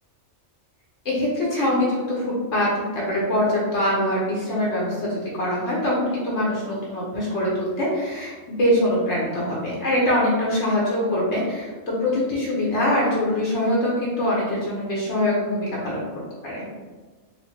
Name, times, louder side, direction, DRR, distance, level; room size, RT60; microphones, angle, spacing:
voice 1, 1.0-16.1 16.4-16.7, left 1 dB, 80° left, -5 dB, 1.2 m, -23 dB
4.3 x 2.6 x 2.8 m, 1.3 s
omnidirectional pair, 1.2 m